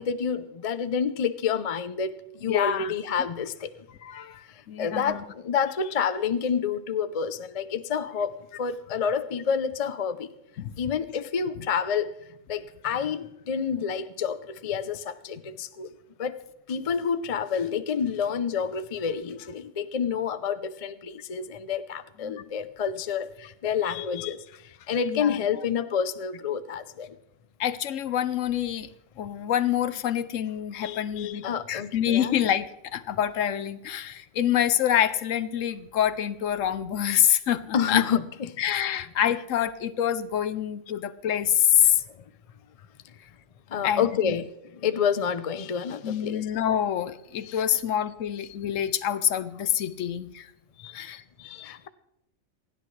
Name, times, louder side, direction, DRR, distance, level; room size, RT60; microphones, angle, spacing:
voice 1, 0.0-3.7 4.8-10.3 10.8-12.1 12.5-15.9 16.2-16.4 16.7-24.4 24.9-27.1 30.8-32.3 37.7-38.5 43.7-46.4 47.4-47.6 49.8-50.1 50.8-51.1 51.4-51.9, left 7 dB, 45° left, 0.4 m, -29 dB
voice 2, 2.4-2.9 4.0-5.2 10.6-10.7 22.2-22.4 25.0-25.4 27.6-28.9 29.2-38.1 38.6-42.0 43.8-44.3 46.0-50.5 50.9-51.2, left 10 dB, 70° left, 1.0 m, -26 dB
28.0 x 10.0 x 3.2 m
omnidirectional pair, 1.5 m